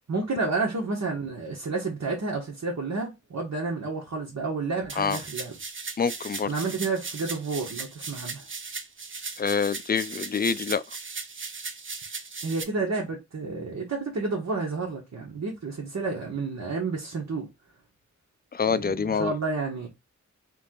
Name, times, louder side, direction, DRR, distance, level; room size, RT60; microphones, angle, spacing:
voice 1, 0.1-5.5 6.4-8.4 12.4-17.5 18.7-19.9, right 3 dB, 75° right, 1.4 m, -30 dB
sound 1, 4.9-12.6, right 4 dB, 45° right, 0.6 m, -37 dB
voice 2, 6.0-6.5 9.4-10.8 18.5-19.3, left 6 dB, 35° left, 0.4 m, -26 dB
3.5 x 3.3 x 3.8 m
wide cardioid pair, 85°, 29 cm